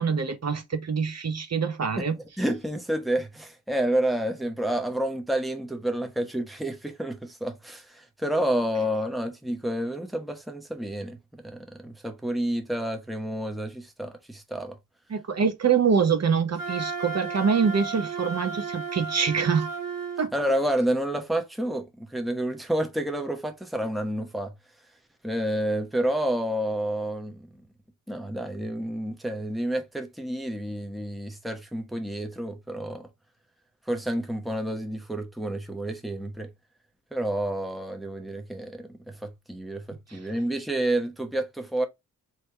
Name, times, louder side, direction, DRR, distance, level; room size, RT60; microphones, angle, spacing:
voice 1, 0.0-2.1 15.1-19.7 20.2-20.3 40.1-40.2, right 6 dB, 50° right, 0.9 m, -25 dB
voice 2, 2.4-14.8 20.3-24.5 25.2-27.6 28.1-33.1 33.9-36.5 37.1-41.9, right 1 dB, ahead, 0.9 m, -29 dB
Wind instrument woodwind instrument, 16.5-20.3, right 5 dB, 75° right, 1.3 m, -33 dB
3.3 x 2.9 x 4.4 m
cardioid pair, 75°, 33 cm